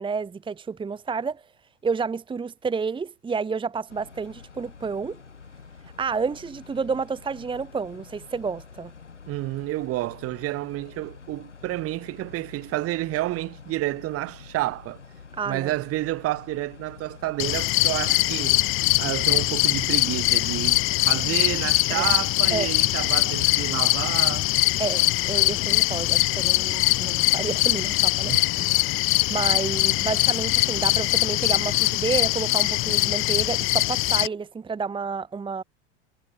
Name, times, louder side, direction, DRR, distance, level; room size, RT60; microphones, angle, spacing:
voice 1, 0.0-1.4 1.8-5.2 6.0-8.9 15.4-15.7 21.9-22.1 22.5-22.7 24.8-28.4 29.3-35.6, right 5 dB, 15° right, 1.3 m, -30 dB
sound 1, 3.9-21.5, left 5 dB, 85° left, 7.7 m, -47 dB
voice 2, 9.3-15.0 15.5-18.6 19.0-24.5 28.2-28.7, right 17 dB, 40° right, 2.4 m, -30 dB
sound 2, 17.4-34.3, left 21 dB, 35° left, 0.7 m, -22 dB
figure-of-eight pair, 85°, 34 cm